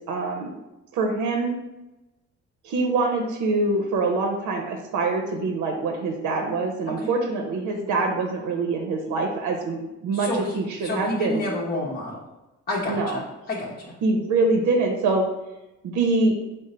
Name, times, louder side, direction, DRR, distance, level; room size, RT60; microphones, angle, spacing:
voice 1, 0.1-0.5 0.9-1.5 2.6-11.4 12.9-13.2 14.0-15.2 15.8-16.4, right 3 dB, 80° right, 3 dB, 0.6 m, -24 dB
voice 2, 10.1-12.2 12.7-13.9, left 1 dB, 30° left, -4 dB, 0.8 m, -30 dB
3.7 x 2.0 x 4.1 m, 0.99 s
cardioid pair, 90°, 30 cm